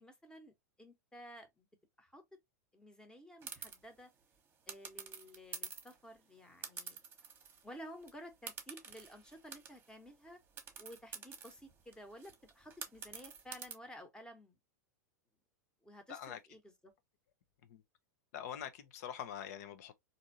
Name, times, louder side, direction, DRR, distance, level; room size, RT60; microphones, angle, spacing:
voice 1, 0.0-1.7 2.0-2.4 2.7-4.1 4.7-7.0 7.6-10.4 10.8-14.6 15.8-16.9, equal, 10° left, 1.0 m, -53 dB
sound 1, 3.4-3.8 4.7-6.0 6.6-7.7 8.0-8.1 8.5-9.9 10.6-13.7, right 6 dB, 25° right, 1.0 m, -48 dB
voice 2, 16.1-16.4 17.7-17.8 18.3-19.9, left 9 dB, 60° left, 0.7 m, -44 dB
3.5 x 2.7 x 2.7 m
hypercardioid pair, 100°, 9 cm